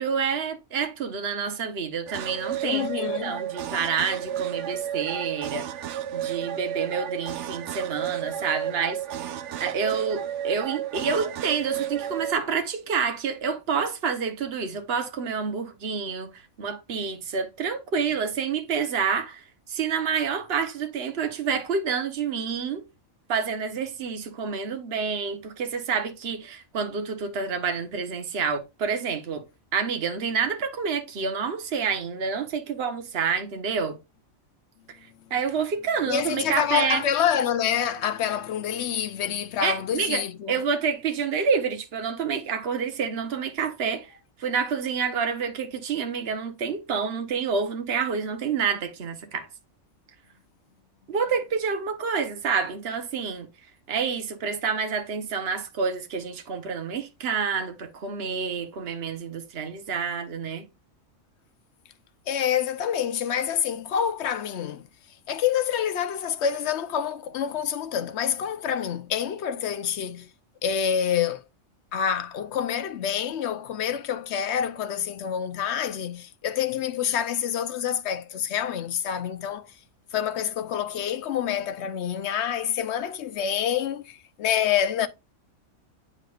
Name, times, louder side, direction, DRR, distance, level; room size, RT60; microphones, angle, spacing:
voice 1, 0.0-5.6 6.1-9.3 9.6-22.8 23.3-29.4 29.7-34.0 35.3-37.0 39.6-44.1 44.4-49.5 51.1-53.5 53.9-60.7, right 6 dB, 50° right, 1.3 m, -28 dB
sound 1, 2.1-12.3, right 10 dB, 65° right, 0.9 m, -32 dB
voice 2, 2.6-3.5 36.0-40.6 62.3-64.9 65.3-70.3 70.6-71.4 71.9-79.7 80.1-85.1, left 9 dB, 60° left, 0.9 m, -27 dB
8.9 x 4.9 x 2.4 m
omnidirectional pair, 1.4 m